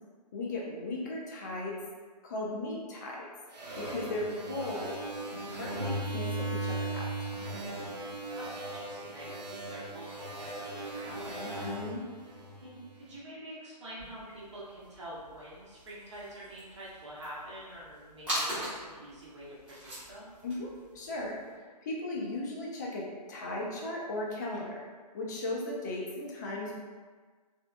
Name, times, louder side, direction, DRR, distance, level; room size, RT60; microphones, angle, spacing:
voice 1, 0.3-1.8 2.2-3.3 3.8-5.0 5.5-7.3 11.3-12.0 20.4-24.8 25.1-26.8, left 2 dB, 25° left, -3 dB, 0.5 m, -37 dB
sound 1, 3.5-13.0, right 1 dB, 75° right, 0.8 m, -38 dB
voice 2, 8.3-11.7 12.5-20.4, right 1 dB, 45° right, -6 dB, 0.8 m, -46 dB
sound 2, 14.0-21.5, equal, 5° right, 0.8 m, -42 dB
3.2 x 2.9 x 2.3 m, 1.5 s
figure-of-eight pair, 140°, 21 cm